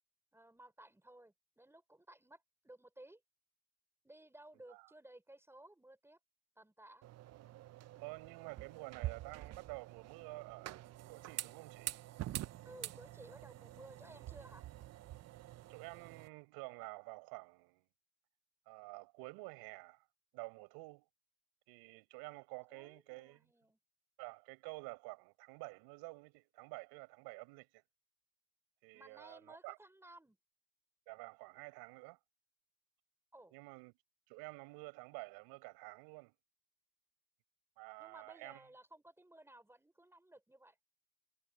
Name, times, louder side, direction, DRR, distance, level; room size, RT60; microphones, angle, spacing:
voice 1, 0.3-3.2 4.0-6.2 6.6-7.0 12.6-14.7 22.7-23.8 28.9-30.4 33.3-33.5 38.0-40.8, right 1 dB, 5° right, 4.9 m, -58 dB
sound 1, 7.0-16.3, right 14 dB, 45° right, 0.7 m, -47 dB
voice 2, 8.0-10.8 11.1-11.9 15.7-17.8 18.7-20.0 20.3-21.1 21.7-23.4 24.2-27.8 28.8-29.8 31.1-32.2 33.5-33.9 34.3-36.3 37.8-38.6, right 27 dB, 80° right, 6.2 m, -50 dB
supercardioid pair, 100°, 38 cm